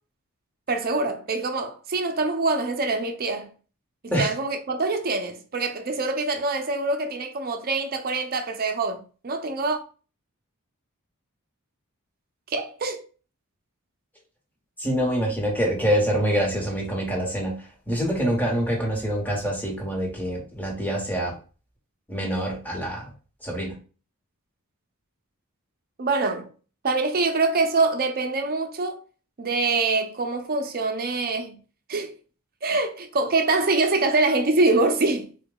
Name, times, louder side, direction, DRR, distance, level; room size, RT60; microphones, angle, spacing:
voice 1, 0.7-3.5 4.0-9.8 12.5-13.0 26.0-26.5 26.8-29.0 29.4-31.6 31.9-32.1 32.6-35.3, right 3 dB, 45° right, 0.6 m, -24 dB
voice 2, 14.8-21.3 22.1-23.0 23.4-23.8, equal, 10° left, 1.1 m, -25 dB
3.9 x 2.3 x 3.8 m
head